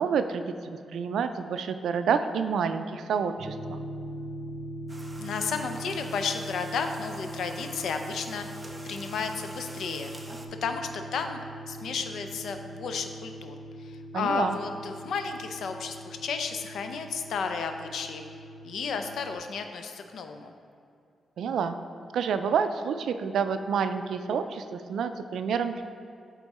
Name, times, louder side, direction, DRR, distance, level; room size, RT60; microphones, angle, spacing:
voice 1, 0.0-3.8 14.1-14.6 21.4-21.7 22.1-25.8, right 6 dB, 90° right, 9 dB, 0.3 m, -28 dB
sound 1, 3.4-19.4, right 1 dB, 50° right, 1.1 m, -41 dB
sound 2, 4.9-10.5, right 1 dB, 15° right, 0.4 m, -47 dB
voice 2, 5.2-10.1 10.6-18.2 18.6-20.5, left 5 dB, 75° left, 6 dB, 0.5 m, -33 dB
8.0 x 3.7 x 4.1 m, 2.5 s
wide cardioid pair, 170°, 0 cm